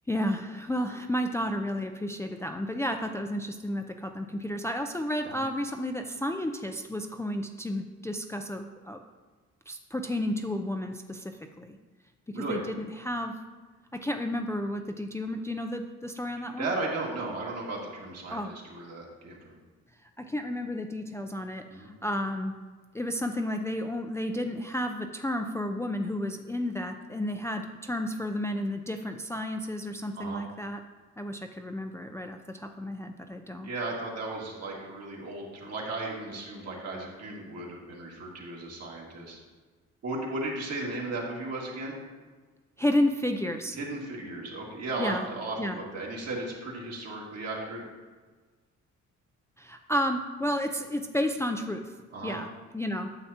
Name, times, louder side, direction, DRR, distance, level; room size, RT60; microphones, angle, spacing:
voice 1, 0.1-9.0 9.7-11.8 12.3-13.3 14.0-16.7 18.3-18.5 20.2-22.5 22.9-30.8 31.2-33.7 42.8-43.8 45.0-45.3 45.6-45.8 49.6-51.9 52.2-53.1, left 1 dB, 10° left, 4 dB, 0.4 m, -32 dB
voice 2, 16.4-19.6 21.7-21.9 30.2-30.4 33.6-39.4 40.0-41.9 43.8-47.8 52.1-52.4, right 2 dB, 55° right, -3 dB, 2.1 m, -35 dB
9.5 x 6.8 x 2.8 m, 1.4 s
cardioid pair, 90°, 30 cm